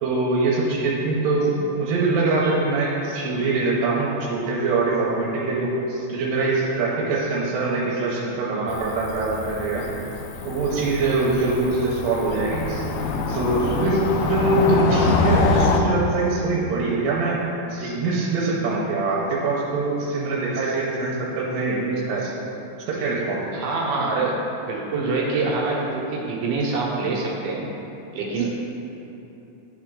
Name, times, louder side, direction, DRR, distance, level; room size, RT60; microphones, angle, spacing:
voice 1, 0.0-9.9 10.5-12.9 13.3-22.3 22.9-23.6, right 3 dB, 85° right, -6 dB, 2.5 m, -23 dB
Cricket / Motor vehicle (road), 8.7-15.8, left 3 dB, 80° left, 1.9 m, -25 dB
voice 2, 23.5-27.7 28.1-28.5, right 3 dB, 70° right, -3 dB, 2.4 m, -25 dB
11.5 x 4.3 x 3.7 m, 3.0 s
omnidirectional pair, 4.0 m